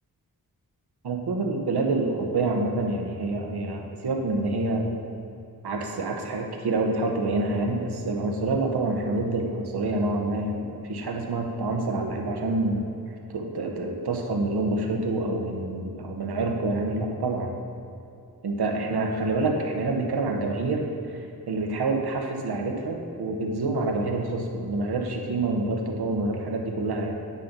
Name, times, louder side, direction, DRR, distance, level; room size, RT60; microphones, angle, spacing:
voice 1, 1.0-4.9 5.6-12.9 13.3-17.5 18.4-27.2, right 2 dB, 90° right, 2 dB, 1.2 m, -27 dB
9.9 x 5.4 x 5.3 m, 2.7 s
wide cardioid pair, 175°, 38 cm